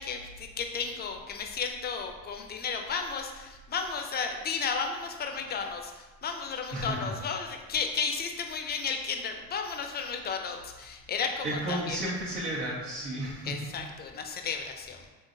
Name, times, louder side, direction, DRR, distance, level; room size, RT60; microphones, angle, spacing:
voice 1, 0.0-12.0 13.4-15.1, left 5 dB, 25° left, 4 dB, 0.4 m, -33 dB
voice 2, 11.4-13.7, right 1 dB, 90° right, -5 dB, 1.3 m, -33 dB
3.7 x 3.2 x 2.6 m, 1.2 s
hypercardioid pair, 75°, 46 cm